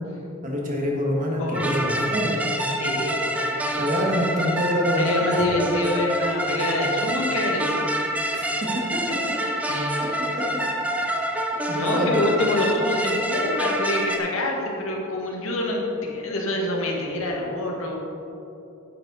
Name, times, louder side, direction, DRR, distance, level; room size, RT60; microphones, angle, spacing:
voice 1, 0.4-2.4 3.8-5.4 8.3-8.5 10.3-10.4 11.0-12.2, equal, 40° right, -1 dB, 1.5 m, -26 dB
voice 2, 1.4-1.8 2.7-3.6 4.9-7.8 9.7-10.1 11.8-18.0, left 1 dB, 75° left, -1 dB, 1.5 m, -26 dB
sound 1, 1.5-14.2, right 1 dB, 5° right, 0.6 m, -27 dB
9.4 x 7.6 x 4.1 m, 2.8 s
head